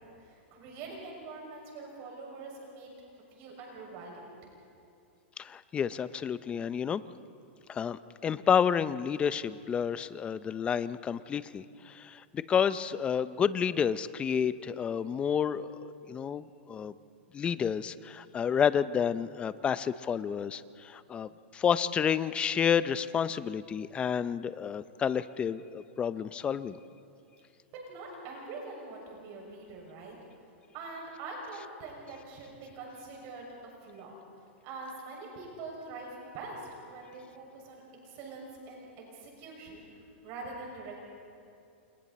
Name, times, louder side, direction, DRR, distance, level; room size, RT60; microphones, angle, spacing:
voice 1, 0.0-2.9 3.3-4.4 27.9-30.1 30.7-34.2 34.6-41.0, right 3 dB, 40° right, -1 dB, 6.2 m, -44 dB
voice 2, 5.4-7.0 7.7-15.7 16.1-16.9 17.3-26.8, left 7 dB, 15° left, 15 dB, 0.5 m, -30 dB
29.0 x 27.5 x 4.2 m, 2.6 s
supercardioid pair, 150°, 7 cm